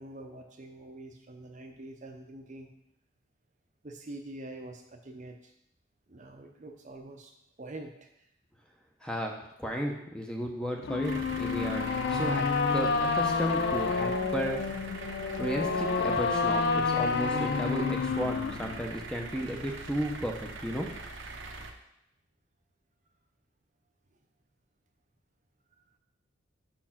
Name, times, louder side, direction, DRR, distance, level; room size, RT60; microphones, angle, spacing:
voice 1, 0.0-2.7 3.8-5.5 6.1-7.3 7.6-8.1, right 2 dB, 40° right, 4 dB, 0.7 m, -45 dB
voice 2, 9.0-12.5 12.7-14.6 15.4-20.9, equal, 5° left, 1 dB, 0.7 m, -34 dB
sound 1, 10.8-18.8, left 4 dB, 55° left, 0.4 m, -29 dB
sound 2, 11.0-21.7, right 3 dB, 70° right, 0.8 m, -43 dB
6.1 x 4.4 x 5.8 m, 0.79 s
head